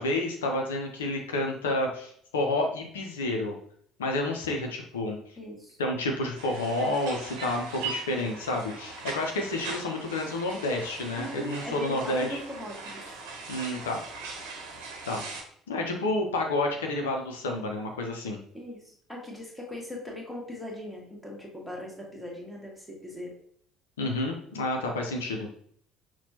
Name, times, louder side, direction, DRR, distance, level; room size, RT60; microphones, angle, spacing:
voice 1, 0.0-3.6 4.0-5.2 5.8-12.4 13.5-14.0 15.1-15.3 15.7-18.4 24.0-25.5, left 2 dB, 75° left, 2 dB, 0.6 m, -30 dB
voice 2, 5.4-5.8 11.2-13.0 18.5-23.3, left 1 dB, 5° left, -2 dB, 1.4 m, -39 dB
sound 1, 6.4-15.4, right 4 dB, 65° right, 0.9 m, -40 dB
5.8 x 2.2 x 2.8 m, 0.63 s
figure-of-eight pair, 55°, 0 cm